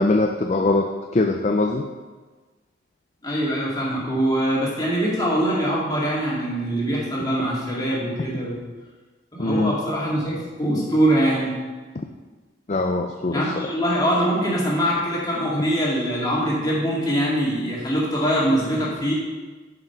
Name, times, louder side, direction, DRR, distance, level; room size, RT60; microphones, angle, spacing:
voice 1, 0.0-1.9 9.4-9.8 12.7-13.7, left 2 dB, 35° left, 4 dB, 0.4 m, -22 dB
voice 2, 3.2-8.6 9.3-11.5 13.3-19.1, equal, 20° left, -6 dB, 2.2 m, -23 dB
7.4 x 5.8 x 5.9 m, 1.3 s
head